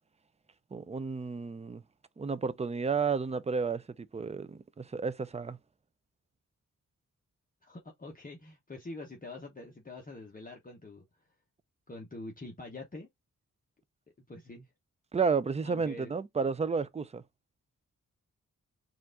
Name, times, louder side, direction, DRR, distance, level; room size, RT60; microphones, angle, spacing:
voice 1, 0.7-1.8 2.2-5.6 15.1-17.2, right 5 dB, 20° right, 0.4 m, -32 dB
voice 2, 7.6-11.0 11.9-13.1 14.3-14.7 15.6-16.1, left 2 dB, 25° left, 1.0 m, -45 dB
4.6 x 2.5 x 3.7 m
wide cardioid pair, 100°, 32 cm